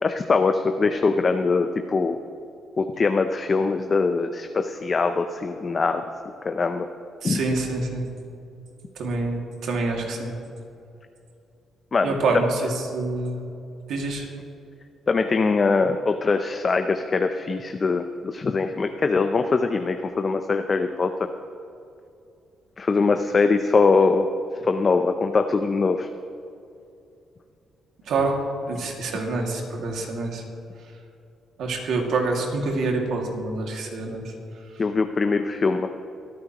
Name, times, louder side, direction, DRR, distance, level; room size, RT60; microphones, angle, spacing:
voice 1, 0.0-2.2 2.8-6.0 6.4-6.9 7.2-7.4 11.9-12.2 15.1-21.1 22.8-24.3 24.6-26.1 34.8-35.9, left 4 dB, 35° left, 7 dB, 0.6 m, -22 dB
voice 2, 7.2-8.0 9.0-10.3 12.0-13.4 13.9-14.3 28.1-30.4 31.6-34.2, right 3 dB, 75° right, 1 dB, 2.2 m, -26 dB
24.0 x 9.6 x 3.0 m, 2.6 s
cardioid pair, 90°, 0 cm